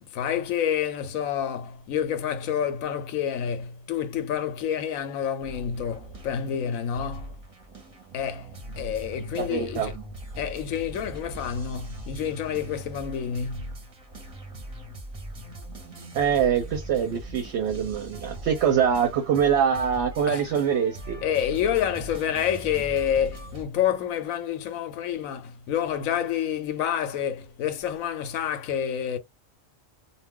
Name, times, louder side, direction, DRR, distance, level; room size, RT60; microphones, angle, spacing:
voice 1, 0.0-7.3 8.1-9.9 10.4-13.7 20.3-20.5 21.2-29.2, left 9 dB, 85° left, 1.0 m, -28 dB
sound 1, 5.4-23.6, right 1 dB, 35° right, 0.7 m, -41 dB
voice 2, 9.3-9.9 16.1-21.2, right 8 dB, 65° right, 0.8 m, -24 dB
2.3 x 2.2 x 3.5 m
omnidirectional pair, 1.4 m